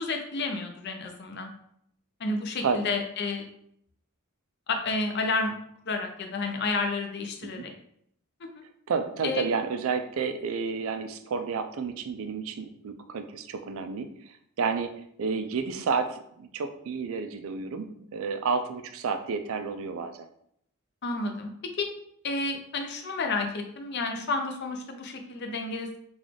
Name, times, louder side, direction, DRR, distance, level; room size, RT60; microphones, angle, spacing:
voice 1, 0.0-1.5 2.2-3.4 4.7-5.5 5.9-7.7 9.2-9.4 21.0-21.5 21.8-21.9 22.2-26.0, left 3 dB, 50° left, 4 dB, 0.5 m, -30 dB
voice 2, 8.9-14.1 14.6-14.9 15.2-20.3, right 5 dB, 70° right, 8 dB, 0.4 m, -30 dB
3.9 x 2.4 x 3.2 m, 0.70 s
head